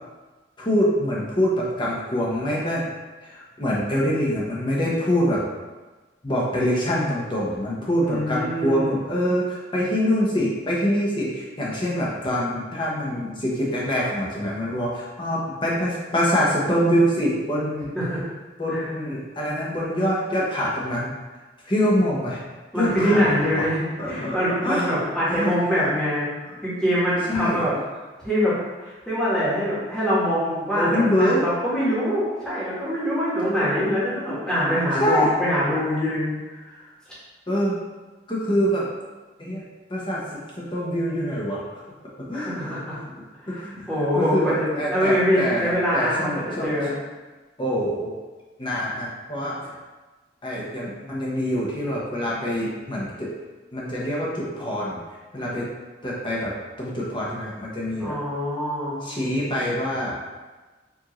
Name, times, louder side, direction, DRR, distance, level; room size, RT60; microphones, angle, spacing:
voice 1, 0.6-2.8 3.2-5.4 6.2-17.9 18.6-21.1 21.6-22.4 22.7-23.2 23.5-23.7 24.0-25.0 25.3-25.5 27.2-27.7 30.8-31.5 35.0-35.3 37.5-37.8 38.3-38.9 39.4-39.6 39.9-41.6 42.2-42.8 43.1-46.8 47.6-48.1 48.6-49.8 50.4-53.3 53.7-55.0 55.3-55.7 56.0-58.2 59.0-60.2, equal, 25° left, -5 dB, 0.9 m, -25 dB
voice 2, 8.0-9.0 17.9-18.2 18.7-18.9 22.7-26.3 26.6-27.7 28.2-28.5 28.8-36.7 42.3-43.0 43.4-46.9 58.0-59.0, equal, 5° left, -9 dB, 1.3 m, -24 dB
4.6 x 2.7 x 3.0 m, 1.2 s
head